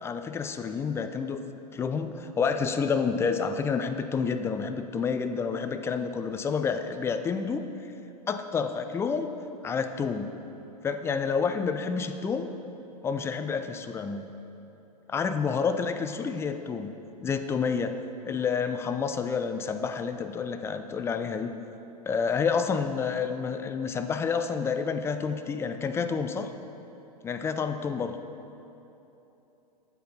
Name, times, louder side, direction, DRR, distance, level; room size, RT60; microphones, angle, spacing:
voice 1, 0.0-1.4 1.7-7.6 8.3-9.3 9.6-10.3 10.8-12.5 13.0-14.3 15.1-16.9 17.2-18.0 18.2-21.5 22.0-26.5 27.2-28.2, left 5 dB, 10° left, 8 dB, 0.4 m, -29 dB
9.0 x 7.7 x 5.6 m, 3.0 s
figure-of-eight pair, 100°, 21 cm